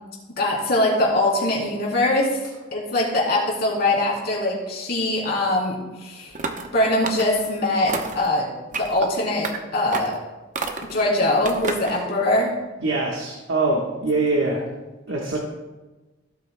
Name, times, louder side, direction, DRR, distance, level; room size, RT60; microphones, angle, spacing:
voice 1, 0.4-2.4 2.7-6.3 6.7-10.2 10.8-12.5, left 1 dB, 55° left, -4 dB, 3.3 m, -22 dB
sound 1, 6.3-6.7 7.0-7.5 7.9-8.3 8.7-9.1 9.4-9.6 9.9-10.2 10.5-11.0 11.4-12.0, right 3 dB, 40° right, 0.8 m, -29 dB
voice 2, 12.8-14.6 15.1-15.4, right 2 dB, 75° right, -2 dB, 1.3 m, -23 dB
16.5 x 8.4 x 2.2 m, 1.2 s
head